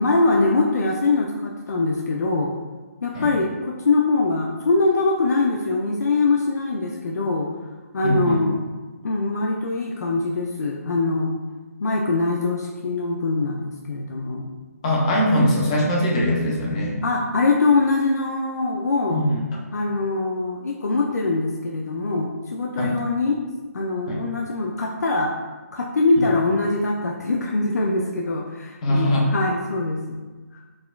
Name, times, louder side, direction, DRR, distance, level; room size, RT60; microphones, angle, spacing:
voice 1, 0.0-2.5 3.0-7.5 7.9-8.6 9.0-11.3 11.8-14.5 17.0-19.2 19.7-23.4 23.7-25.4 25.7-30.2, left 3 dB, 85° left, -1 dB, 0.4 m, -23 dB
voice 2, 8.0-8.4 14.8-17.0 19.1-19.4 22.8-22.9 24.1-24.2 28.8-29.2, equal, 25° left, -3 dB, 0.5 m, -21 dB
4.1 x 2.3 x 2.2 m, 1.3 s
hypercardioid pair, 160°, 9 cm